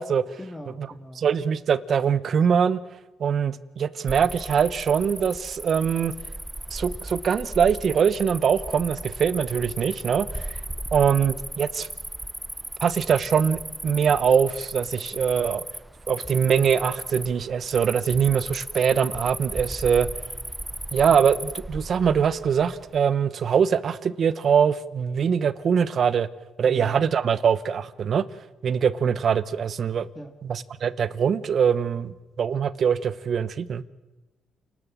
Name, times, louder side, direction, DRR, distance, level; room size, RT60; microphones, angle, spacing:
voice 1, 0.4-1.2 26.6-27.0 30.2-30.3, left 1 dB, 15° left, 5 dB, 2.0 m, -40 dB
voice 2, 1.2-2.8 3.2-6.1 6.7-10.5 10.9-11.9 12.8-15.6 16.1-20.1 20.9-26.3 26.6-28.2 28.6-30.1 30.4-33.8, right 7 dB, 55° right, 17 dB, 1.0 m, -23 dB
Cricket, 4.1-23.0, right 1 dB, 10° right, 0.7 m, -36 dB
29.0 x 12.5 x 7.6 m, 1.1 s
cardioid pair, 90°, 0 cm